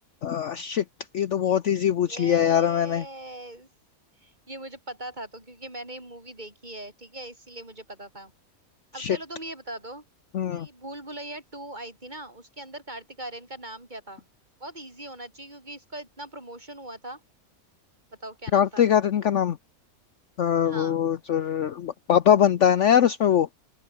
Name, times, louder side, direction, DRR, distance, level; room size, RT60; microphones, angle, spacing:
voice 1, 0.2-0.8 1.1-3.0 9.0-9.2 10.3-10.7 18.5-19.6 20.4-23.5, left 9 dB, 60° left, 1.1 m, -22 dB
voice 2, 2.0-3.7 4.2-8.3 8.9-10.0 10.5-14.2 14.6-17.2 18.2-18.9 20.6-21.0, right 1 dB, 30° right, 6.3 m, -40 dB
open air
omnidirectional pair, 1.5 m